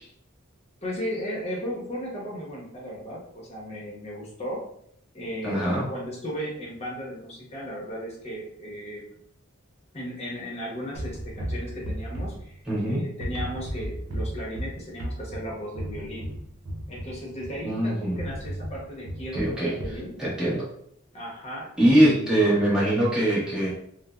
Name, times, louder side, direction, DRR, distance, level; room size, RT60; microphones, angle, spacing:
voice 1, 0.8-4.6 5.1-9.1 9.9-12.6 12.8-16.3 16.9-20.1 21.1-22.4, equal, 30° left, -3 dB, 0.9 m, -36 dB
voice 2, 5.4-5.9 12.7-13.0 17.6-18.2 19.3-19.7 20.2-20.7 21.8-23.7, right 1 dB, 5° right, -7 dB, 0.9 m, -22 dB
sound 1, 11.0-12.9 13.2-17.7 18.2-20.1, equal, 75° right, 0.6 m, -35 dB
3.2 x 2.0 x 2.3 m, 0.69 s
head